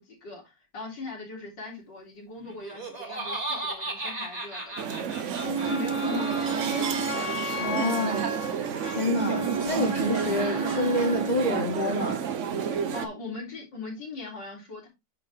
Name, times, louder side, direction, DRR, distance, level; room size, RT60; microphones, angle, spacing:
voice 1, 0.0-5.0 5.5-6.8 12.9-14.9, left 3 dB, 80° left, 4.1 m, -39 dB
Laughter, 2.5-7.7, right 2 dB, 25° right, 1.8 m, -36 dB
sound 1, 4.8-13.1, right 7 dB, 55° right, 0.9 m, -31 dB
Wind instrument woodwind instrument, 5.4-11.4, right 2 dB, 40° left, 2.1 m, -32 dB
voice 2, 7.6-8.3 8.8-12.2, left 1 dB, 25° left, 1.9 m, -28 dB
10.5 x 3.7 x 3.5 m
omnidirectional pair, 1.9 m